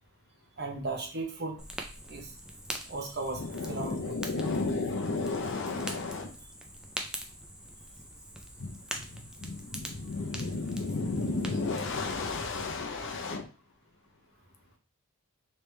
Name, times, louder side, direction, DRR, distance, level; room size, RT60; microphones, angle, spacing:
voice 1, 0.6-1.6 2.1-2.3 2.9-3.4 3.7-4.1, right 3 dB, 45° right, 2 dB, 0.9 m, -35 dB
Fire, 1.6-12.7, right 1 dB, 5° right, 0.3 m, -44 dB
voice 2, 3.4-6.3 8.6-8.8 9.4-13.4, left 3 dB, 55° left, 4 dB, 0.6 m, -33 dB
3.3 x 3.2 x 3.2 m, 0.38 s
head